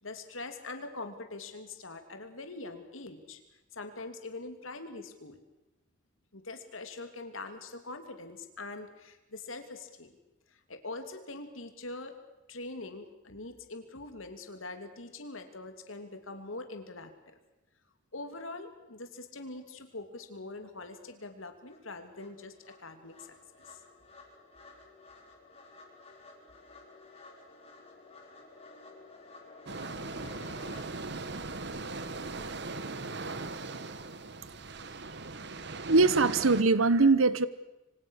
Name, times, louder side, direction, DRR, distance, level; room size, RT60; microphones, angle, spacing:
voice 1, 0.0-3.4 3.7-5.4 6.3-10.2 10.7-12.2 12.5-17.4 18.1-23.3 23.7-23.8, left 2 dB, 75° left, 7 dB, 3.0 m, -43 dB
sound 1, 20.7-20.8 21.2-30.8, left 3 dB, 30° left, 5.3 m, -53 dB
sound 2, 29.7-36.6, right 3 dB, 55° right, 1.5 m, -39 dB
voice 2, 35.9-37.5, right 3 dB, 80° right, 16 dB, 1.0 m, -22 dB
26.5 x 25.0 x 6.6 m, 0.99 s
head